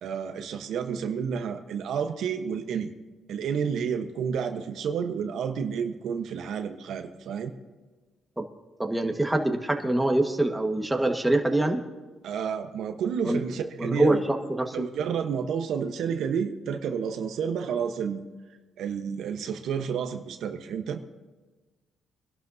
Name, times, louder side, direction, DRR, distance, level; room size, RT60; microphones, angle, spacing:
voice 1, 0.0-2.9 3.3-7.5 12.2-14.2 14.7-18.2 18.8-21.0, right 7 dB, 75° right, 6 dB, 1.0 m, -30 dB
voice 2, 8.8-11.8 13.2-13.4 13.8-14.7, right 1 dB, 10° right, 3 dB, 1.5 m, -24 dB
24.5 x 12.0 x 2.7 m, 1.2 s
cardioid pair, 90°, 0 cm